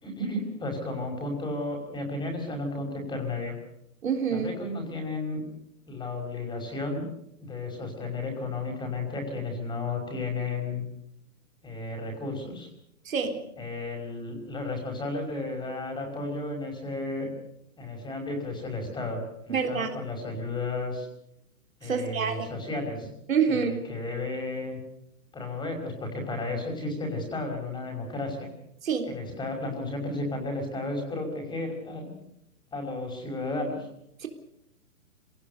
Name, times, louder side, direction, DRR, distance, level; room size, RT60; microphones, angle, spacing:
voice 1, 0.0-3.5 4.3-5.4 5.9-7.1 7.4-10.8 11.6-12.7 13.6-17.3 17.8-21.1 21.8-23.1 23.5-24.8 25.3-28.5 29.0-32.1 32.7-33.9, left 2 dB, 10° left, 3 dB, 5.4 m, -33 dB
voice 2, 4.0-4.5 13.1-13.4 19.5-19.9 21.8-22.5 23.3-23.7 28.8-29.1 34.2-34.3, right 6 dB, 60° right, 5 dB, 3.9 m, -26 dB
26.0 x 18.5 x 6.7 m, 0.79 s
figure-of-eight pair, 130°, 45 cm